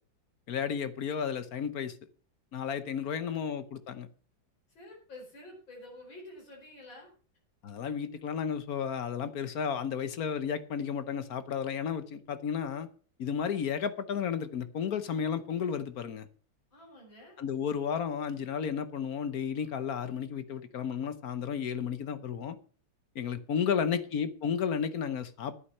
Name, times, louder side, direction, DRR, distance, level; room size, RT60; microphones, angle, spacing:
voice 1, 0.5-2.0 2.5-4.1 7.6-12.9 13.2-16.3 17.4-22.6 23.1-25.6, left 7 dB, 55° left, 1.2 m, -33 dB
voice 2, 3.1-3.6 4.7-7.1 16.7-17.4 23.7-24.1, left 1 dB, 80° left, 5.2 m, -50 dB
11.5 x 9.8 x 5.5 m
omnidirectional pair, 2.1 m